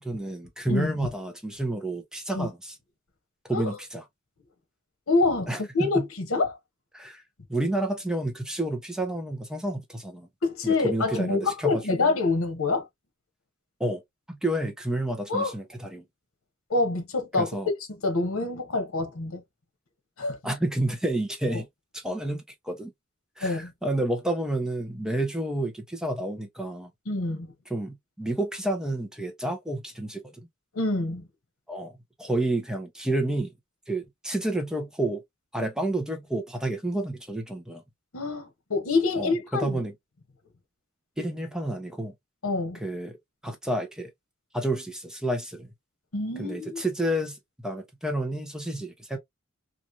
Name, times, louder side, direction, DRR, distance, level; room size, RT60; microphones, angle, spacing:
voice 1, 0.0-2.7 3.5-4.0 5.5-6.1 6.9-7.2 7.5-10.3 10.6-12.1 13.8-14.0 14.3-16.0 17.4-17.7 20.4-21.7 21.9-22.9 23.4-26.9 27.7-30.5 31.7-31.9 32.2-33.5 33.9-35.2 35.5-37.8 39.2-39.9 41.2-42.1 42.7-43.2 43.4-44.1 44.5-45.7 46.4-47.4 47.6-49.2, right 1 dB, 5° right, 0.7 m, -30 dB
voice 2, 0.7-1.0 2.3-2.5 3.5-3.7 5.1-6.6 10.4-12.9 15.3-15.5 16.7-17.5 18.0-19.4 20.2-20.4 21.5-21.6 23.4-23.7 27.1-27.5 30.7-31.2 38.1-39.9 42.4-42.8 46.1-46.8, left 3 dB, 85° left, 1.0 m, -26 dB
3.0 x 2.5 x 2.5 m
head